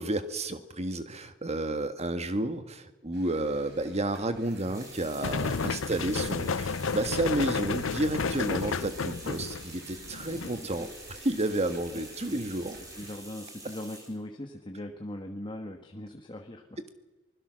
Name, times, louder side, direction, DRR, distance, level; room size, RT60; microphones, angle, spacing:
voice 1, 0.0-12.8, right 1 dB, 35° right, 9 dB, 1.6 m, -31 dB
sound 1, 3.1-13.2, right 3 dB, 60° right, 4.0 m, -53 dB
sound 2, 4.4-14.2, right 2 dB, 15° right, 4.4 m, -47 dB
sound 3, 5.2-10.6, left 5 dB, 70° left, 0.6 m, -31 dB
voice 2, 5.5-6.0 10.3-10.9 12.3-12.5 12.9-16.8, left 1 dB, 25° left, 3 dB, 1.6 m, -41 dB
24.5 x 21.0 x 6.4 m, 1.1 s
head